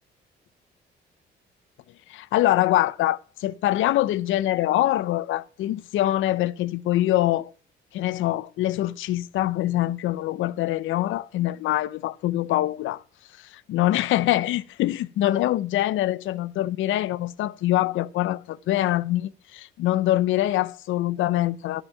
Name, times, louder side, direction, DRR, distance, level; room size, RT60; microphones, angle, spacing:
voice 1, 2.1-7.5 7.9-13.0 13.4-21.8, left 14 dB, 85° left, 0.6 m, -24 dB
13.0 x 6.0 x 4.5 m
cardioid pair, 90°, 20 cm